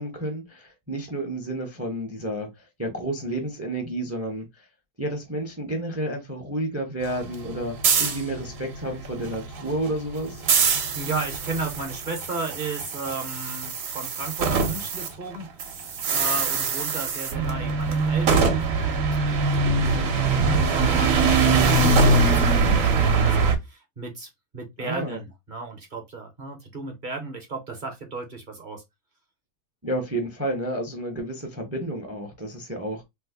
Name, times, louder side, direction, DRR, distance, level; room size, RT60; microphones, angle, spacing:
voice 1, 0.0-4.7 5.0-10.4 24.8-25.2 29.8-33.0, right 1 dB, 20° right, 0.4 m, -31 dB
sound 1, 7.0-15.1 15.3-23.6, right 4 dB, 65° right, 1.1 m, -23 dB
voice 2, 10.9-28.8, right 3 dB, 40° right, 0.7 m, -35 dB
3.2 x 2.1 x 3.3 m
omnidirectional pair, 1.7 m